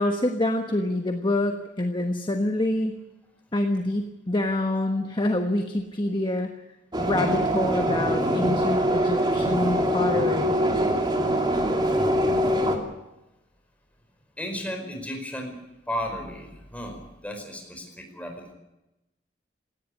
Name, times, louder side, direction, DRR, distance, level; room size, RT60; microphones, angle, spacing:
voice 1, 0.0-3.0 3.5-6.5 7.0-10.6, left 1 dB, 25° left, 5 dB, 1.3 m, -26 dB
voice 2, 4.5-5.1 11.1-11.9 14.4-15.5 15.9-18.5, equal, 10° left, 3 dB, 4.8 m, -35 dB
sound 1, 6.9-12.8, equal, 25° right, 2.8 m, -23 dB
18.0 x 16.0 x 9.9 m, 0.96 s
head